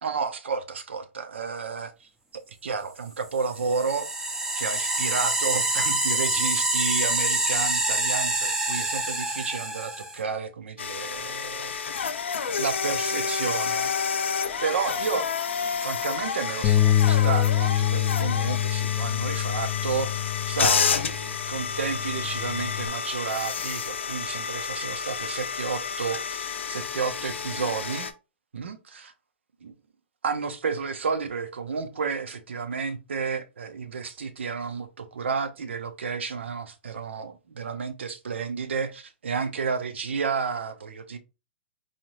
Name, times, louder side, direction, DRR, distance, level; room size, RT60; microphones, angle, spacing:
voice 1, 0.0-4.1 4.5-11.7 12.6-13.9 14.6-15.3 15.8-20.1 20.5-28.1 28.5-29.1 29.6-29.7 30.2-41.2, right 5 dB, 85° right, 0.7 m, -31 dB
sound 1, 3.4-10.2, right 1 dB, 10° right, 0.5 m, -26 dB
sound 2, 10.8-28.1, left 6 dB, 85° left, 0.5 m, -30 dB
Bass guitar, 16.6-22.9, left 11 dB, 40° left, 0.5 m, -26 dB
4.2 x 2.4 x 3.1 m
hypercardioid pair, 140°, 6 cm